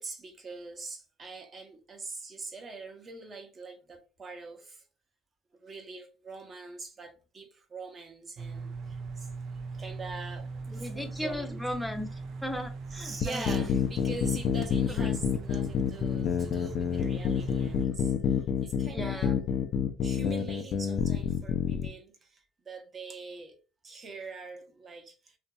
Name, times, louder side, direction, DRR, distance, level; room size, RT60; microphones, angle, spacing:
voice 1, 0.0-4.8 5.6-9.3 9.8-11.6 12.9-18.1 18.6-19.6 20.0-22.4 22.7-23.5 23.8-25.1, right 3 dB, 35° right, 0.9 m, -43 dB
sound 1, 8.4-17.9, right 4 dB, 55° right, 0.4 m, -40 dB
voice 2, 10.7-13.8 14.9-15.1 18.9-19.4, left 1 dB, ahead, 0.6 m, -37 dB
sound 2, 13.2-21.9, left 7 dB, 60° left, 0.4 m, -28 dB
2.8 x 2.6 x 2.3 m
supercardioid pair, 80°, 0 cm